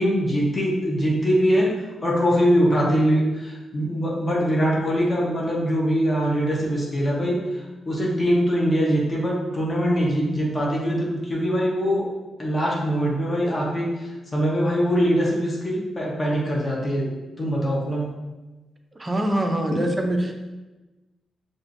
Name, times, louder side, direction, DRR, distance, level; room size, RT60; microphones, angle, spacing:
voice 1, 0.0-1.7 2.0-12.1 12.4-17.1 17.4-18.1, equal, 25° left, -4 dB, 0.9 m, -22 dB
voice 2, 19.0-20.3, right 1 dB, 20° right, 3 dB, 0.5 m, -24 dB
6.4 x 2.5 x 2.6 m, 1.1 s
wide cardioid pair, 135°, 0 cm